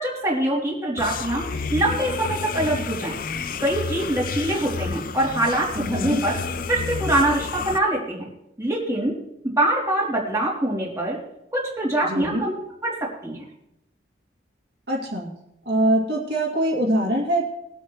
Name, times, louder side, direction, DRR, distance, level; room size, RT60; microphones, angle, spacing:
voice 1, 0.0-3.2 3.6-6.4 6.7-8.3 8.6-9.1 9.4-11.2 11.5-12.5 12.8-12.9 13.2-13.4, right 1 dB, 15° right, -5 dB, 3.1 m, -24 dB
sound 1, 1.0-7.8, left 5 dB, 50° left, 0.5 m, -30 dB
voice 2, 5.8-6.2 12.0-12.4 14.9-15.3 15.7-17.4, right 1 dB, 60° right, -3 dB, 2.5 m, -23 dB
21.0 x 8.2 x 3.2 m, 0.83 s
head